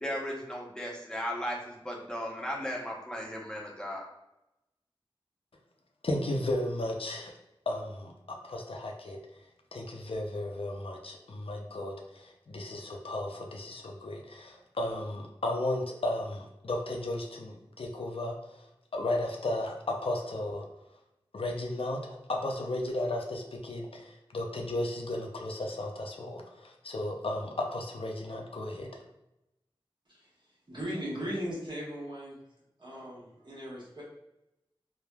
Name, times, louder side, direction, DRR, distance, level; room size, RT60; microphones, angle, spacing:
voice 1, 0.0-4.0, equal, 10° left, -3 dB, 0.7 m, -36 dB
voice 2, 6.0-7.3 7.7-9.2 9.7-19.8 20.0-20.7 21.3-28.9, left 1 dB, 75° left, 1 dB, 0.4 m, -34 dB
voice 3, 30.7-32.4 32.8-34.0, equal, 50° right, -6 dB, 1.0 m, -38 dB
3.1 x 2.0 x 2.2 m, 0.87 s
wide cardioid pair, 40°, 10 cm